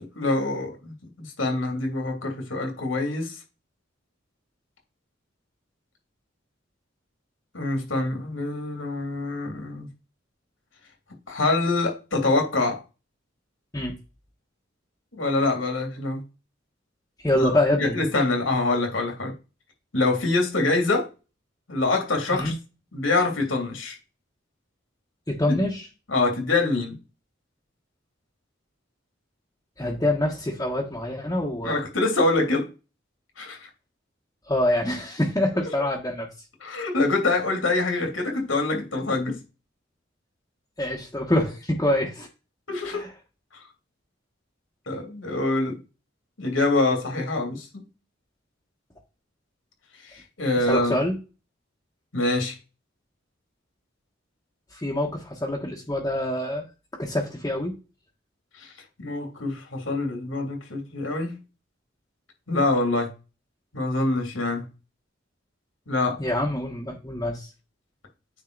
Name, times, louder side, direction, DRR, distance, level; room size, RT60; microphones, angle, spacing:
voice 1, 0.2-3.4 7.5-9.9 11.3-12.8 15.2-16.2 17.3-17.5 17.8-19.3 19.9-21.1 21.7-22.5 22.9-24.0 25.5-25.6 26.1-27.0 31.6-32.7 33.4-33.6 36.6-39.4 42.7-43.0 44.9-45.8 46.4-47.8 50.0-51.0 52.1-52.6 58.6-58.7 59.0-61.4 62.5-63.1 63.7-64.6 65.9-66.2, left 2 dB, 85° left, 2.8 m, -25 dB
voice 2, 17.2-18.0 22.3-22.5 25.3-25.9 29.8-31.8 34.5-36.3 40.8-42.3 42.8-43.1 50.7-51.2 54.7-56.7 56.9-57.8 66.2-67.5, left 1 dB, 15° left, 1.2 m, -25 dB
9.3 x 3.7 x 4.0 m
head